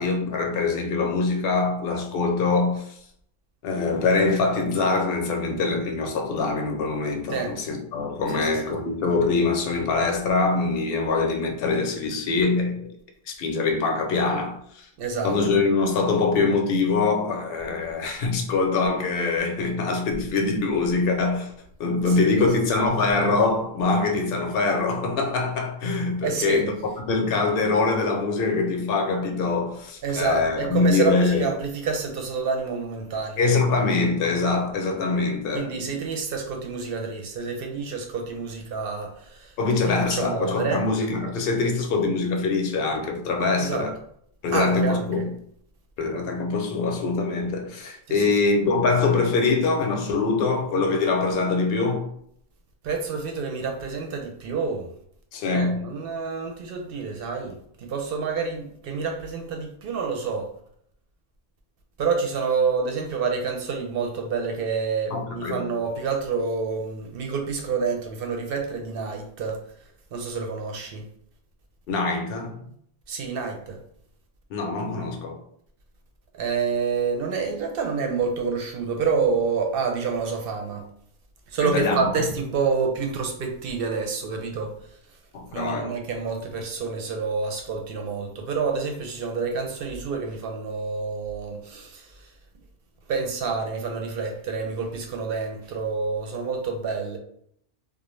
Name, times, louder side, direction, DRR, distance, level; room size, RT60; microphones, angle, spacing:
voice 1, 0.0-2.9 3.6-12.9 13.3-14.9 15.2-21.5 21.8-31.5 33.4-36.0 39.6-43.9 44.4-45.3 46.0-52.1 55.3-55.8 65.1-65.7 71.9-72.6 74.5-75.4 81.6-82.1 85.3-85.9, left 3 dB, 70° left, 0.7 m, -24 dB
voice 2, 8.3-8.8 15.0-15.4 22.2-22.5 26.2-26.7 30.0-33.5 35.5-39.5 40.1-40.8 43.6-43.8 44.5-45.1 48.1-48.3 52.8-54.9 55.5-60.5 62.0-69.6 70.1-71.1 72.6-72.7 73.1-73.8 76.3-80.9 81.5-84.7 85.5-92.3 93.1-97.2, right 5 dB, 65° right, 0.7 m, -28 dB
2.4 x 2.0 x 3.0 m
omnidirectional pair, 1.1 m